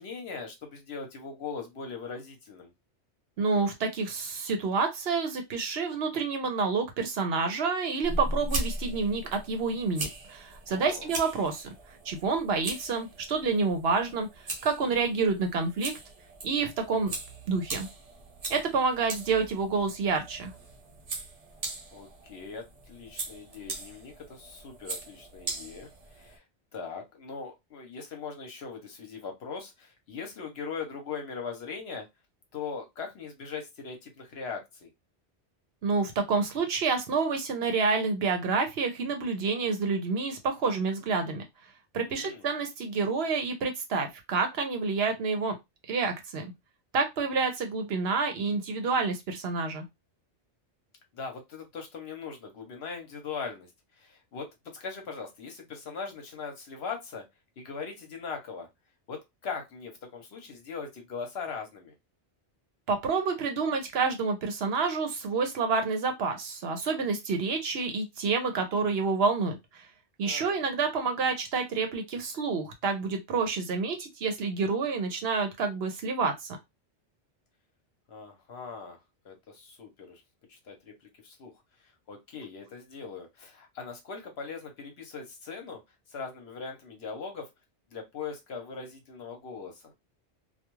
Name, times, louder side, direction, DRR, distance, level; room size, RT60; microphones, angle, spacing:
voice 1, 0.0-2.7 10.7-11.1 21.9-26.4 26.7-32.1 32.5-34.9 42.0-42.5 51.1-53.7 54.0-57.2 57.6-58.7 59.1-61.9 70.2-70.6 78.1-79.0 79.2-80.2 80.5-80.9 81.2-81.5 82.1-85.8 86.1-87.5 87.9-89.9, left 5 dB, 65° left, 3 dB, 1.0 m, -40 dB
voice 2, 3.4-11.7 12.0-14.3 14.6-15.9 16.4-17.1 17.5-17.9 18.5-20.5 35.8-41.4 41.9-45.6 45.9-46.5 46.9-49.8 62.9-69.8 70.2-76.6, right 4 dB, 65° right, 5 dB, 0.9 m, -28 dB
sound 1, 8.0-26.4, right 2 dB, 40° right, 0.6 m, -39 dB
2.3 x 2.3 x 3.0 m, 0.20 s
omnidirectional pair, 1.2 m